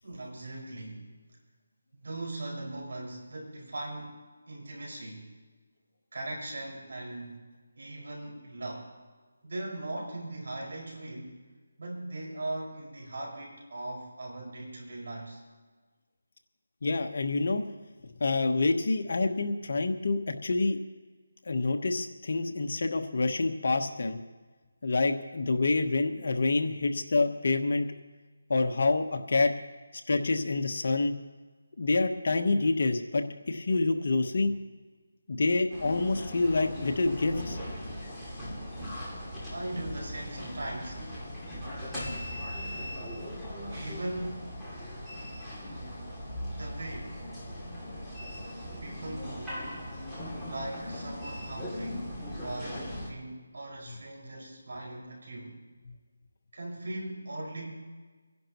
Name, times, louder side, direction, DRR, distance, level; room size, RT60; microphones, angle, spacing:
voice 1, 0.0-1.2 2.0-5.3 6.1-7.4 7.8-8.9 9.4-11.4 11.8-15.4 39.5-41.1 43.7-44.5 46.6-47.2 48.8-49.6 50.4-55.6 56.5-57.7, right 2 dB, 60° right, -2 dB, 5.5 m, -39 dB
voice 2, 16.8-17.6 18.2-20.8 21.5-24.2 24.8-27.9 28.5-29.5 30.1-31.1 31.8-34.5 35.3-37.6, left 3 dB, 55° left, 5 dB, 1.2 m, -27 dB
sound 1, 35.7-53.1, equal, ahead, 2.5 m, -39 dB
27.0 x 11.0 x 3.1 m, 1.4 s
figure-of-eight pair, 170°, 0 cm